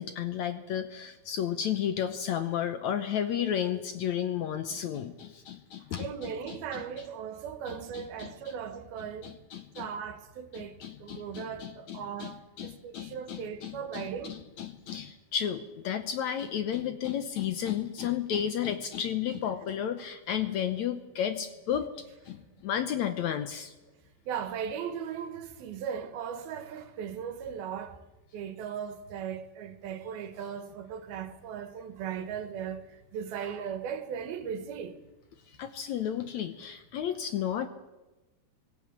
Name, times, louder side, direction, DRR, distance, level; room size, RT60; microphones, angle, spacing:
voice 1, 0.0-6.8 7.7-8.5 9.2-9.9 10.5-21.9 22.3-23.7 35.6-37.7, left 9 dB, 70° left, 1.8 m, -33 dB
voice 2, 6.0-9.3 9.8-10.7 11.0-12.4 12.6-14.3 24.3-28.0 28.3-32.8 33.1-34.9, right 7 dB, 85° right, 3.4 m, -37 dB
25.5 x 16.5 x 7.4 m
omnidirectional pair, 4.2 m